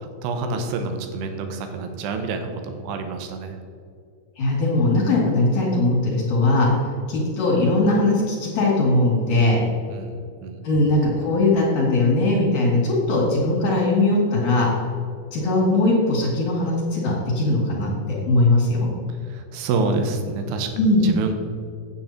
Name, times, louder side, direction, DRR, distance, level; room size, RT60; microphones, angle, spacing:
voice 1, 0.0-3.6 9.9-10.6 19.2-20.7 21.0-21.3, right 3 dB, 85° right, 6 dB, 3.1 m, -28 dB
voice 2, 4.4-6.7 7.1-9.6 10.6-14.7 15.3-17.9 18.3-18.9 20.8-21.1, left 2 dB, 50° left, -8 dB, 3.4 m, -20 dB
9.3 x 8.9 x 4.4 m, 2.2 s
omnidirectional pair, 4.7 m